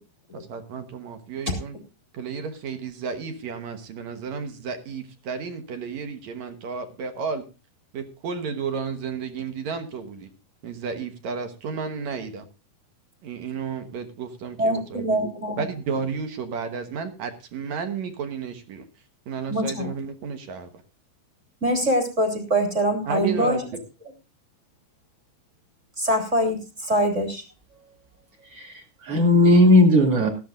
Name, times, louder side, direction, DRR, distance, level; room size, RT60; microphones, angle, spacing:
voice 1, 0.3-1.8 2.1-7.4 7.9-10.3 10.6-12.5 13.2-15.2 15.6-18.8 19.3-20.7 23.1-23.8, right 5 dB, 65° right, 9 dB, 1.9 m, -32 dB
voice 2, 14.6-15.6 19.5-19.9 21.6-23.6 26.0-27.4, equal, 20° right, 3 dB, 3.1 m, -23 dB
voice 3, 28.5-30.3, left 1 dB, 40° right, 2 dB, 2.8 m, -17 dB
17.5 x 14.0 x 2.5 m, 0.30 s
omnidirectional pair, 4.8 m